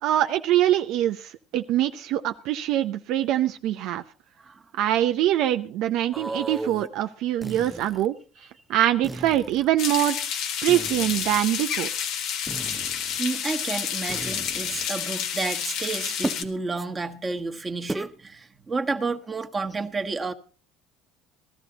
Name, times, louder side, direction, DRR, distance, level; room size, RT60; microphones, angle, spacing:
voice 1, 0.0-4.0 4.7-8.2 8.7-10.2 10.6-12.1, right 12 dB, 65° right, 0.6 m, -24 dB
sound 1, 6.1-6.9 7.4-8.1 9.0-9.7 10.7-11.4 12.5-13.2 14.1-14.9 16.2-16.5 16.8-16.9 17.9-18.1, right 2 dB, 5° right, 0.7 m, -35 dB
sound 2, 9.8-16.4, left 8 dB, 65° left, 1.4 m, -30 dB
voice 2, 13.2-20.3, right 3 dB, 25° right, 1.4 m, -30 dB
16.5 x 12.5 x 3.9 m
supercardioid pair, 80°, 0 cm